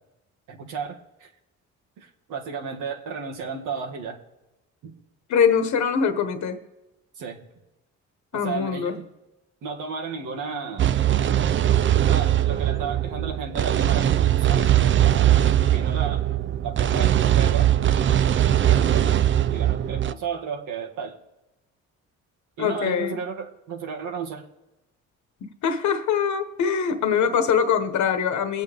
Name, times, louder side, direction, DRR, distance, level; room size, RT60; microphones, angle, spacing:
voice 1, 0.5-1.3 2.0-4.2 4.8-4.9 7.2-7.4 8.3-9.0 9.6-10.9 12.1-15.2 15.7-16.2 16.6-17.7 18.7-19.2 19.5-21.2 22.6-24.4, right 5 dB, 90° right, 1 dB, 1.9 m, -33 dB
voice 2, 5.3-6.6 8.3-9.0 22.6-23.2 25.6-28.6, left 7 dB, 70° left, 8 dB, 1.2 m, -23 dB
sound 1, 10.8-20.1, right 11 dB, 40° right, 0.5 m, -20 dB
23.0 x 8.4 x 3.4 m, 0.99 s
cardioid pair, 90°, 30 cm